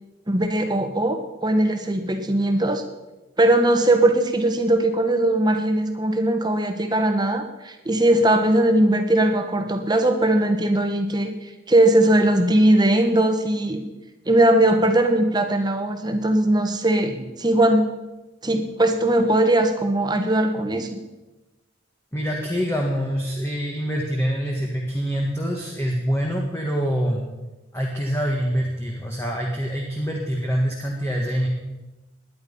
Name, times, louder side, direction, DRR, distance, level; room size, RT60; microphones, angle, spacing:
voice 1, 0.3-2.8 3.4-13.8 14.3-17.8 18.4-21.0, right 1 dB, 20° right, 6 dB, 1.4 m, -20 dB
voice 2, 22.1-27.2 27.7-31.5, equal, 15° left, -1 dB, 1.8 m, -25 dB
18.5 x 10.5 x 5.6 m, 1.1 s
head